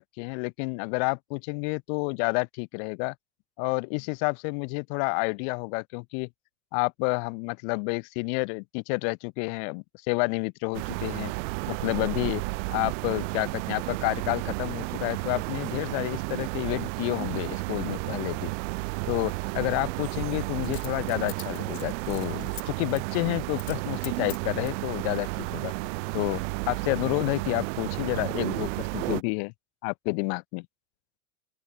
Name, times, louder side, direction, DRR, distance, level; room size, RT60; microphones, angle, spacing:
voice 1, 0.0-3.2 3.6-6.3 6.7-11.3 11.7-12.4 12.7-18.5 19.1-25.7 26.1-26.4 26.7-29.5 29.8-30.7, left 40 dB or more, 55° left, 1.8 m, -29 dB
sound 1, 10.7-29.2, right 27 dB, 65° right, 7.6 m, -32 dB
Coin (dropping), 18.0-18.1 20.6-22.6 23.0-23.1 23.5-23.8 24.0-24.8 25.5-26.0 26.3-26.4, left 22 dB, 70° left, 3.8 m, -43 dB
open air
supercardioid pair, 155°, 40 cm